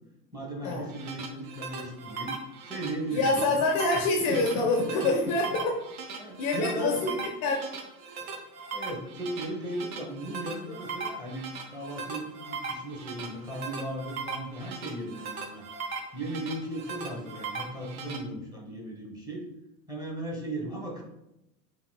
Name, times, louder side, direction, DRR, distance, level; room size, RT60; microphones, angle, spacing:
voice 1, 0.3-2.3 2.6-3.6 3.9-4.9 5.2-5.3 6.2-7.2 8.2-8.4 8.7-15.7 16.1-19.4 19.9-21.0, right 1 dB, 10° right, -1 dB, 0.6 m, -36 dB
sound 1, 0.7-18.2, right 4 dB, 60° right, 0.8 m, -39 dB
voice 2, 3.1-5.8 6.4-7.1 7.4-7.6, left 3 dB, 35° left, 1 dB, 0.4 m, -26 dB
4.8 x 2.8 x 2.3 m, 0.86 s
figure-of-eight pair, 80°, 50 cm